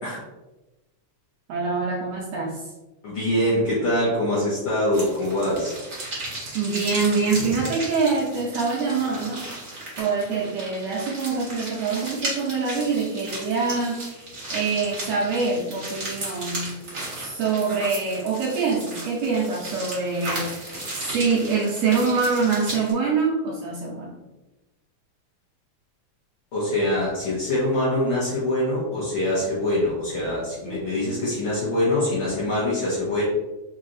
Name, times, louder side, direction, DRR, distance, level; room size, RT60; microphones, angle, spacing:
voice 1, 1.5-2.6 6.5-9.5 10.0-14.0 14.5-16.7 17.1-20.5 20.9-24.2 30.6-30.8, right 4 dB, 75° right, -3 dB, 1.6 m, -25 dB
voice 2, 3.0-5.7 26.5-33.2, left 1 dB, 65° left, -8 dB, 1.4 m, -24 dB
sound 1, 4.9-22.9, right 2 dB, 60° right, 0.8 m, -35 dB
4.7 x 3.0 x 2.5 m, 1.1 s
omnidirectional pair, 3.5 m